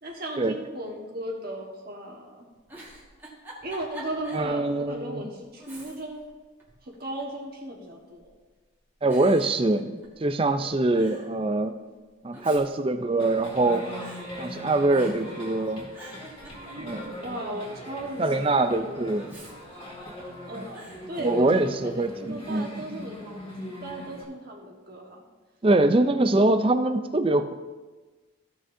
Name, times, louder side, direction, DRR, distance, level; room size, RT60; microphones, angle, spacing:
voice 1, 0.0-2.5 3.6-6.2 6.8-8.3 10.6-10.9 17.1-19.3 20.5-23.2 23.8-25.2, right 1 dB, 50° right, -2 dB, 1.3 m, -36 dB
Giggle, 2.5-4.5 4.9-5.0 5.6-6.3 6.6-7.4 8.2-8.6 9.1-10.3 10.6-10.7 10.9-11.3 12.1-13.7 14.0-14.2 14.9-15.4 15.7-17.1 19.2-20.3 20.7-21.0, right 1 dB, 10° right, 1.6 m, -46 dB
voice 2, 4.3-5.3 9.0-11.8 12.2-13.8 14.4-15.9 16.8-17.2 18.2-19.3 20.6-20.7 21.2-22.8 25.6-27.5, right 2 dB, 25° right, 9 dB, 0.4 m, -24 dB
sound 1, 13.2-24.2, equal, 25° left, 2.1 m, -41 dB
15.0 x 6.2 x 2.6 m, 1.3 s
head